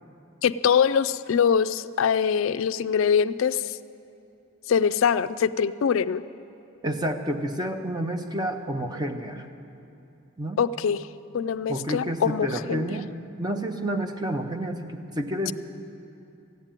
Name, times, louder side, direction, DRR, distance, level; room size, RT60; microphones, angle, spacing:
voice 1, 0.4-3.8 4.7-6.2 10.6-11.1 11.3-12.8 15.5-15.6, left 7 dB, 70° left, 13 dB, 0.3 m, -23 dB
voice 2, 6.8-9.5 10.4-10.6 11.7-13.1 13.4-15.5, right 1 dB, 20° right, 6 dB, 0.7 m, -29 dB
14.5 x 8.9 x 9.0 m, 2.8 s
head